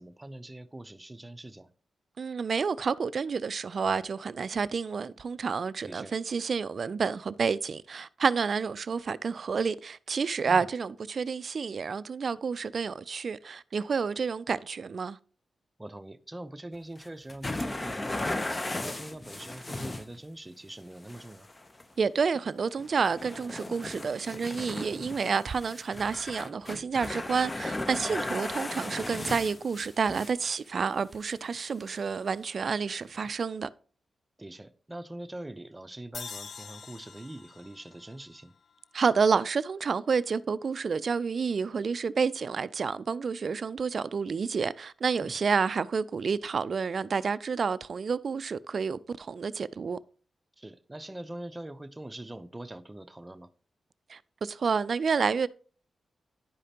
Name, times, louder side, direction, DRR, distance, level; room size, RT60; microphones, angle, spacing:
voice 1, 0.0-1.7 5.8-6.1 10.5-10.7 15.8-21.5 28.1-28.3 34.4-38.5 45.2-45.4 50.6-53.5, right 1 dB, 20° right, 0.6 m, -43 dB
voice 2, 2.2-15.2 22.0-33.7 38.9-50.0 54.1-55.5, right 5 dB, 60° right, 0.3 m, -29 dB
sound 1, 17.0-20.2 21.1-21.8 22.3-22.5 22.8-30.3 31.1-31.2 31.9-32.0 33.2-33.3, left 2 dB, 30° left, 0.7 m, -36 dB
sound 2, 36.1-39.4, left 6 dB, 65° left, 0.3 m, -46 dB
10.5 x 4.9 x 2.9 m
cardioid pair, 55°, 0 cm